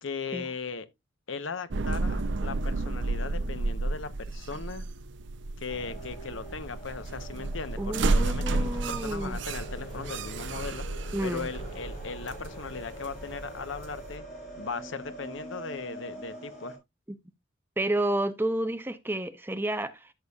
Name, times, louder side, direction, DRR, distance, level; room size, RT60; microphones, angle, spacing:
voice 1, 0.0-0.9 1.3-4.9 5.6-10.9 11.2-14.2 14.6-16.8, left 4 dB, 75° left, 0.9 m, -38 dB
sound 1, 1.7-14.1, right 2 dB, 65° right, 0.6 m, -32 dB
sound 2, 5.7-16.8, equal, 50° left, 5.0 m, -44 dB
voice 2, 7.8-9.4 11.1-11.5 17.8-20.1, right 1 dB, 10° right, 0.6 m, -30 dB
Wind instrument woodwind instrument, 11.1-15.9, right 11 dB, 25° left, 3.7 m, -56 dB
12.5 x 6.9 x 2.3 m
head